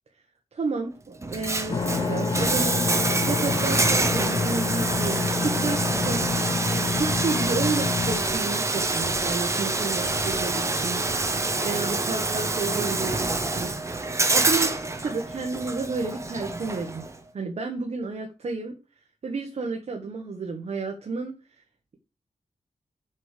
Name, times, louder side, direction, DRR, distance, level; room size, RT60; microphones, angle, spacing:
voice 1, 0.5-6.5 6.9-14.0 14.3-14.7 15.0-17.0 17.3-18.7 19.2-21.3, right 4 dB, 55° right, 3 dB, 1.5 m, -31 dB
Bathtub (filling or washing), 1.2-17.2, right 2 dB, 20° right, 1.0 m, -26 dB
sound 1, 1.7-8.2, left 4 dB, 35° left, 0.9 m, -28 dB
sound 2, 3.9-12.1, left 4 dB, 60° left, 1.6 m, -42 dB
7.4 x 5.2 x 6.8 m, 0.31 s
wide cardioid pair, 170°, 13 cm